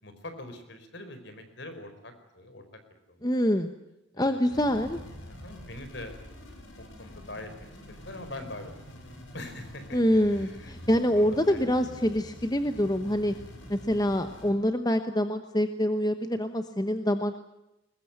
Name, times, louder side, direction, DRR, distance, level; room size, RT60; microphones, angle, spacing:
voice 1, 0.0-2.6 3.1-3.3 3.5-3.6 4.1-4.6 5.3-6.1 6.8-7.5 7.9-8.8 9.3-10.7 11.2-11.7, left 2 dB, 55° left, 8 dB, 4.8 m, -43 dB
voice 2, 3.2-3.7 4.2-5.0 9.9-13.3 13.7-17.4, equal, 20° left, 8 dB, 1.0 m, -26 dB
sound 1, 4.5-14.5, equal, 75° left, 6.3 m, -46 dB
22.0 x 21.0 x 8.8 m, 0.92 s
head